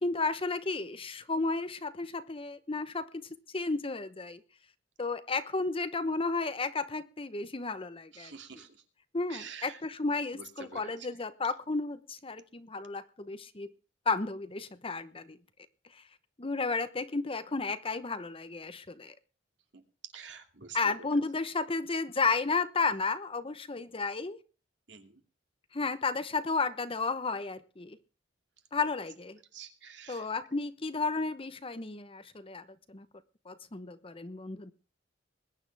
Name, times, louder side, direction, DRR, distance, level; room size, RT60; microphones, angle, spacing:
voice 1, 0.0-3.2 3.5-4.4 5.0-8.6 9.1-13.7 14.1-15.4 16.4-19.1 20.7-24.4 25.7-28.0 28.7-29.4 30.1-33.1 33.5-34.7, left 3 dB, 30° left, 12 dB, 0.9 m, -33 dB
voice 2, 8.1-8.7 9.3-9.8 10.4-10.9 20.1-20.8 24.9-25.1 29.5-30.3, right 6 dB, 70° right, 5 dB, 2.5 m, -47 dB
21.0 x 9.8 x 3.4 m, 0.35 s
head